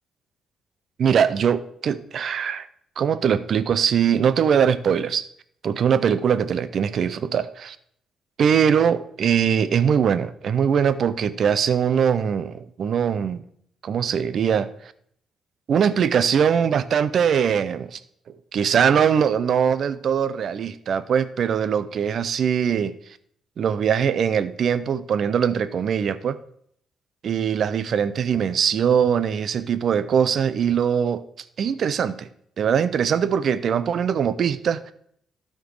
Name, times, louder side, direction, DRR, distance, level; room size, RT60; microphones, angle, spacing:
voice 1, 1.0-2.7 3.0-5.2 5.6-7.8 8.4-13.4 13.8-14.7 15.7-18.0 18.5-22.9 23.6-26.4 27.2-31.2 31.6-32.3 32.6-34.9, right 7 dB, 60° right, 14 dB, 0.6 m, -21 dB
12.5 x 4.5 x 4.8 m, 0.67 s
cardioid pair, 90°, 0 cm